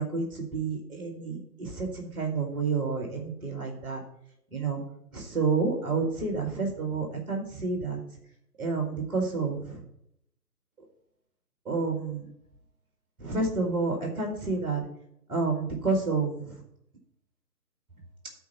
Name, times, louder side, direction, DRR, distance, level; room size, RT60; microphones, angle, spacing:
voice 1, 0.0-4.0 4.5-4.8 5.1-8.0 8.6-9.8 11.6-12.2 13.2-14.8 15.3-16.5, right 4 dB, ahead, 1 dB, 1.3 m, -29 dB
11.5 x 4.6 x 5.5 m, 0.75 s
figure-of-eight pair, 155°, 47 cm